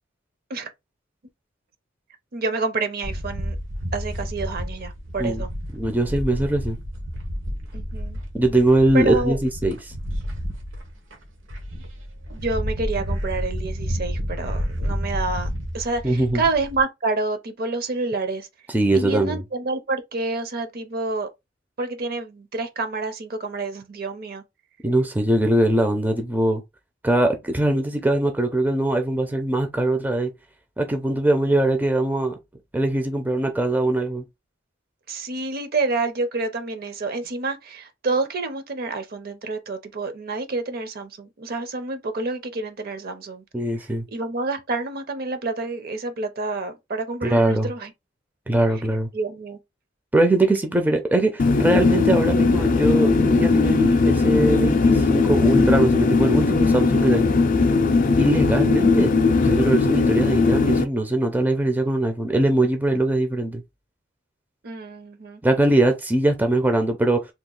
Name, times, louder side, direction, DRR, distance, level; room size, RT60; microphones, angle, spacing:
voice 1, 2.3-3.6 3.9-5.5 7.7-8.2 8.9-9.4 11.7-11.8 12.3-15.5 15.7-18.5 18.9-21.3 21.8-24.4 35.1-43.4 44.1-47.9 49.1-49.6 64.6-65.4, right 3 dB, 50° right, 0.6 m, -28 dB
sound 1, 3.0-16.8, equal, 85° right, 1.1 m, -30 dB
voice 2, 5.7-6.8 8.3-10.0 16.0-16.4 18.7-19.4 24.8-26.6 27.0-30.3 30.8-32.4 32.7-34.3 43.5-44.1 47.2-47.7 48.5-49.1 50.1-57.2 58.2-59.1 59.4-63.6 65.4-67.3, right 1 dB, 10° right, 0.4 m, -21 dB
sound 2, 51.4-60.8, left 4 dB, 45° left, 0.4 m, -18 dB
2.9 x 2.3 x 3.7 m
head